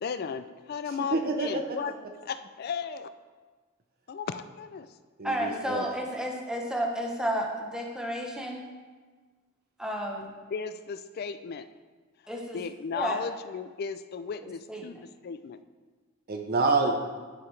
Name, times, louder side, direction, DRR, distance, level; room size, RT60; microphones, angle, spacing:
voice 1, 0.0-2.0 2.2-3.1 4.1-4.9 10.5-11.7 12.2-15.6, left 6 dB, 50° left, 12 dB, 0.3 m, -35 dB
voice 2, 0.9-1.6 5.2-5.9 16.3-17.0, right 3 dB, 50° right, 3 dB, 0.6 m, -27 dB
voice 3, 5.2-8.6 9.8-10.3 12.3-12.6 12.9-13.2 14.7-14.8, equal, 5° right, 0 dB, 0.8 m, -31 dB
11.5 x 4.8 x 3.2 m, 1.4 s
head